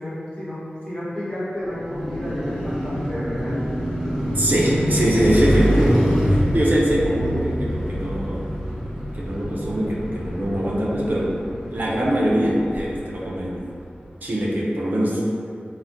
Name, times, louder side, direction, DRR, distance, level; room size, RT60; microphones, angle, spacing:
voice 1, 0.0-3.7, equal, 30° left, -9 dB, 0.9 m, -31 dB
Car passing by, 1.6-13.8, equal, 10° right, 1.0 m, -25 dB
voice 2, 4.3-8.5 9.1-11.4 11.7-13.6 14.2-15.2, equal, 55° right, -5 dB, 0.4 m, -22 dB
2.6 x 2.0 x 3.3 m, 2.5 s
wide cardioid pair, 65°, 4 cm